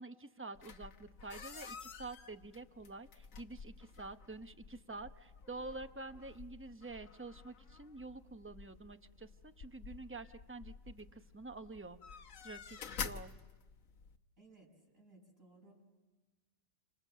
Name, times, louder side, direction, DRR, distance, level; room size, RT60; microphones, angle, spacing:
voice 1, 0.0-12.0 12.4-13.3, right 3 dB, 10° right, 9 dB, 0.7 m, -48 dB
sound 1, 0.5-14.2, left 6 dB, 70° left, 1.4 m, -50 dB
voice 2, 14.4-15.8, right 2 dB, 70° right, -2 dB, 6.6 m, -61 dB
29.0 x 26.0 x 7.6 m, 1.2 s
omnidirectional pair, 1.4 m